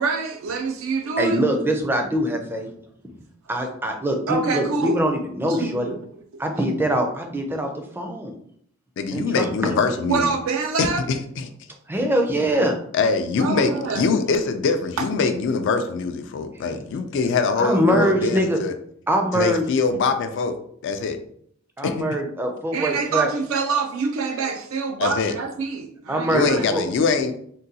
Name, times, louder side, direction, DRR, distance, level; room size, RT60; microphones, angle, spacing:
voice 1, 0.0-1.4 4.3-5.0 5.5-6.0 6.3-6.4 10.1-11.1 13.4-14.1 15.0-15.1 22.7-26.7, right 4 dB, 85° right, 0.4 m, -26 dB
voice 2, 1.2-2.7 3.5-5.9 6.4-8.3 9.1-9.7 11.9-12.8 17.6-18.6 19.1-19.7 21.8-23.3 26.1-26.8, right 1 dB, 10° right, 0.4 m, -23 dB
voice 3, 9.0-10.2 10.8-11.5 12.9-18.7 19.3-20.6 20.8-21.2 21.8-22.1 25.0-25.4 26.3-27.3, left 4 dB, 65° left, 0.3 m, -23 dB
3.7 x 2.2 x 2.7 m
head